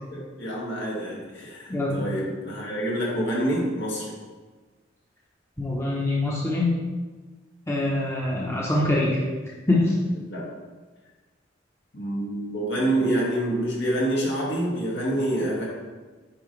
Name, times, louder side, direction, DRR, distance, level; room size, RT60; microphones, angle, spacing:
voice 1, 0.1-4.1 10.3-10.4 11.9-15.7, right 1 dB, 65° left, -5 dB, 2.1 m, -27 dB
voice 2, 1.7-2.0 5.6-6.7 7.7-9.2 9.7-9.9, left 2 dB, 15° left, -5 dB, 1.0 m, -24 dB
8.8 x 5.4 x 3.3 m, 1.3 s
head